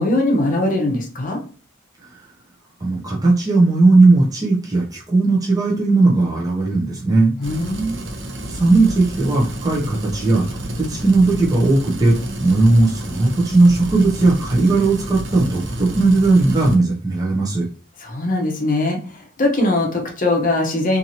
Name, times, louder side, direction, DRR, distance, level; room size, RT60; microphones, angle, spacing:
voice 1, 0.0-1.4 7.4-8.0 18.0-21.0, left 2 dB, 40° left, 1 dB, 0.7 m, -21 dB
voice 2, 2.8-7.3 8.5-12.1 12.4-17.7, right 2 dB, 20° right, -4 dB, 0.6 m, -17 dB
simmering water in pot, 7.4-16.8, right 1 dB, 60° right, 0.6 m, -31 dB
2.7 x 2.6 x 2.8 m, 0.39 s
head